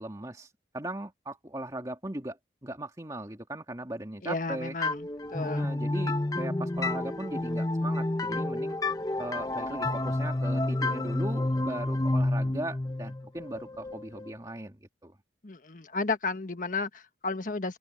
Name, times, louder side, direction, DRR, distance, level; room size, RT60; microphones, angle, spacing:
voice 1, 0.0-4.7 5.4-8.8 9.2-15.2, right 1 dB, 20° right, 2.3 m, -38 dB
voice 2, 4.2-5.7 15.4-17.8, left 3 dB, 45° left, 1.4 m, -33 dB
sound 1, 4.8-14.3, left 2 dB, 20° left, 0.7 m, -30 dB
open air
head